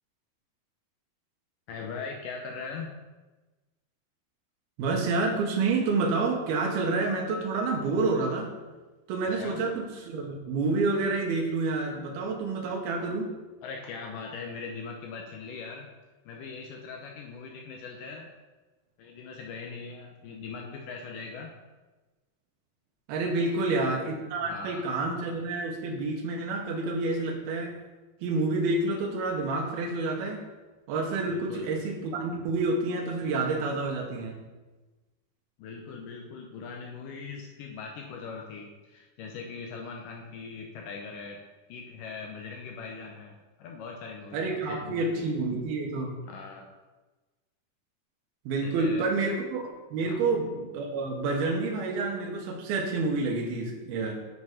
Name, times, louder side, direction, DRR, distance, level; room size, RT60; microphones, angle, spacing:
voice 1, 1.7-3.0 9.2-9.7 13.6-15.9 16.3-18.3 19.0-21.5 23.4-23.8 24.4-24.9 31.3-31.7 35.6-41.4 41.7-45.4 46.2-46.7 48.6-49.1 50.0-50.2, left 5 dB, 85° left, 1 dB, 1.8 m, -41 dB
voice 2, 4.8-8.5 9.1-13.3 23.1-27.7 28.2-30.4 30.9-34.4 44.3-46.1 48.5-49.6 49.9-54.1, right 3 dB, 75° right, 1 dB, 2.9 m, -28 dB
8.7 x 5.5 x 4.8 m, 1.2 s
omnidirectional pair, 4.7 m